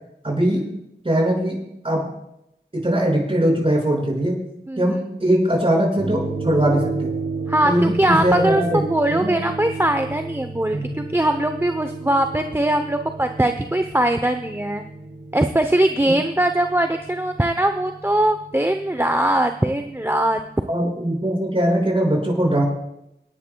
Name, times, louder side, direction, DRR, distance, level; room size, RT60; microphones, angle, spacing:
voice 1, 0.2-0.6 1.0-1.6 1.8-2.1 2.7-4.4 4.8-7.1 7.6-9.4 10.7-10.9 20.7-22.6, right 1 dB, 30° right, -1 dB, 5.8 m, -21 dB
voice 2, 4.7-5.0 7.5-8.6 8.9-14.8 15.3-20.4, right 1 dB, 15° right, 7 dB, 0.7 m, -21 dB
sound 1, 6.0-20.5, right 3 dB, 60° right, 4.5 m, -33 dB
27.0 x 10.0 x 2.3 m, 0.84 s
cardioid pair, 50°, 19 cm